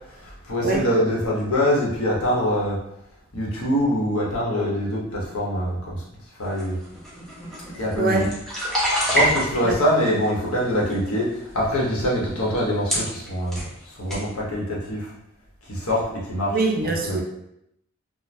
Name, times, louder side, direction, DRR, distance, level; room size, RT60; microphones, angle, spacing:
voice 1, 0.1-2.8 3.3-6.0 6.4-6.8 7.7-8.3 9.0-15.1 15.7-17.2, equal, 90° left, -4 dB, 0.9 m, -24 dB
sound 1, 6.6-9.9 10.5-11.1 11.8-11.9 12.6-12.7 12.9-13.7 14.1-14.3, equal, ahead, 0.6 m, -26 dB
voice 2, 8.0-8.3 9.6-9.8 16.5-17.2, right 3 dB, 45° right, 1 dB, 0.4 m, -23 dB
3.2 x 2.1 x 2.5 m, 0.78 s
head